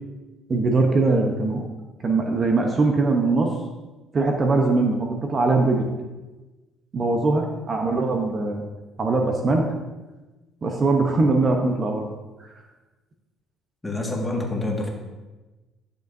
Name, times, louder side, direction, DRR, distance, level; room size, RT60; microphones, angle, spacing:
voice 1, 0.5-1.7 2.0-3.5 4.1-5.9 6.9-8.6 9.0-9.7 10.6-12.1 12.4-12.5, right 3 dB, 35° right, 3 dB, 0.9 m, -21 dB
voice 2, 13.8-14.9, left 2 dB, 10° left, -1 dB, 1.8 m, -27 dB
11.0 x 6.7 x 2.7 m, 1.2 s
cardioid pair, 100°, 0 cm